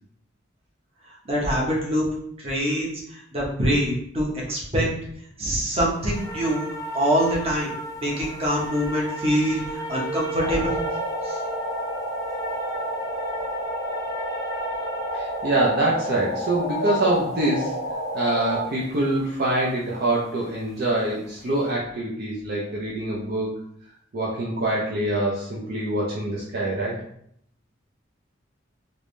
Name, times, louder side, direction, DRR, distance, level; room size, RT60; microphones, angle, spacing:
voice 1, 1.2-2.1 2.4-4.9 5.4-6.7 6.9-7.7 8.0-10.7 11.2-11.4, equal, 30° right, -3 dB, 1.0 m, -24 dB
sound 1, 5.9-20.9 21.2-21.6, right 1 dB, 20° left, 0.4 m, -36 dB
sound 2, 10.3-18.7, equal, 70° left, 0.6 m, -30 dB
voice 2, 15.1-17.8 18.1-23.5 24.1-27.0, right 1 dB, 55° right, -4 dB, 0.6 m, -25 dB
3.4 x 2.6 x 3.2 m, 0.69 s
head